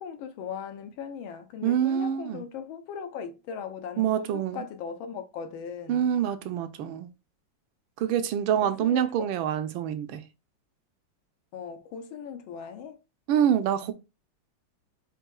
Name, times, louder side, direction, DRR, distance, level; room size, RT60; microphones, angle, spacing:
voice 1, 0.0-6.1 8.6-9.3 11.5-13.0, left 7 dB, 90° left, 1.5 m, -39 dB
voice 2, 1.6-2.4 4.0-4.6 5.9-7.1 8.0-10.2 13.3-13.9, right 9 dB, 80° right, 1.4 m, -26 dB
7.7 x 2.7 x 2.3 m
omnidirectional pair, 2.2 m